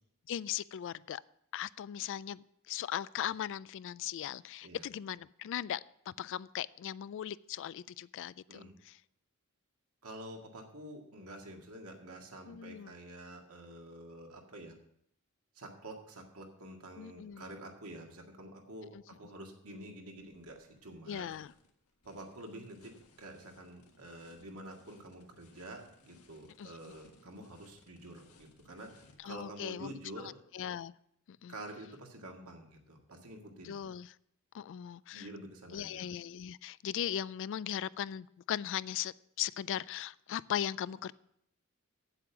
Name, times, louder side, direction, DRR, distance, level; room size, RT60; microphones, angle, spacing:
voice 1, 0.3-1.2 1.5-5.8 6.1-9.0 12.5-12.9 17.0-17.5 18.9-19.0 21.1-21.5 26.6-26.7 29.2-29.9 30.5-30.9 31.3-31.5 33.6-34.1 34.5-35.3 35.7-41.1, left 10 dB, 55° left, 19 dB, 0.3 m, -38 dB
voice 2, 10.0-14.7 15.6-21.3 22.1-22.9 23.2-28.9 29.2-30.3 31.5-33.8 35.1-36.1, right 1 dB, 75° right, 2 dB, 1.9 m, -48 dB
sound 1, 20.1-29.2, left 3 dB, 80° left, 1.6 m, -64 dB
8.6 x 8.1 x 5.9 m, 0.72 s
head